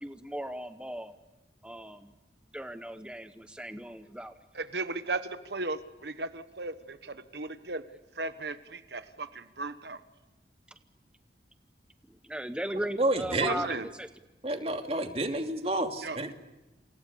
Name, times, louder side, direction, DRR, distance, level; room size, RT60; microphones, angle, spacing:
voice 1, 0.0-1.1 1.6-2.1 2.5-4.3 12.1-14.1, right 1 dB, 5° right, 9 dB, 0.9 m, -37 dB
voice 2, 4.5-7.8 8.1-10.0 13.3-13.9 16.0-16.3, right 3 dB, 70° right, 11 dB, 1.3 m, -36 dB
voice 3, 13.0-13.6 14.4-16.3, right 1 dB, 35° right, 5 dB, 2.7 m, -29 dB
29.0 x 28.0 x 7.0 m, 1.0 s
head